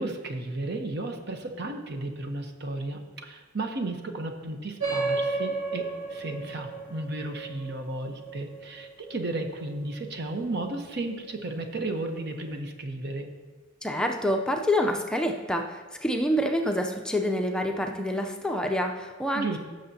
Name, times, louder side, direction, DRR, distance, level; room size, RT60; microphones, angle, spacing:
voice 1, 0.0-13.3 19.3-19.6, right 2 dB, 60° right, 5 dB, 0.9 m, -34 dB
sound 1, 4.8-9.7, right 3 dB, 75° right, 2.7 m, -33 dB
voice 2, 13.8-19.6, equal, 5° left, 3 dB, 0.5 m, -27 dB
16.0 x 6.5 x 2.8 m, 1.3 s
head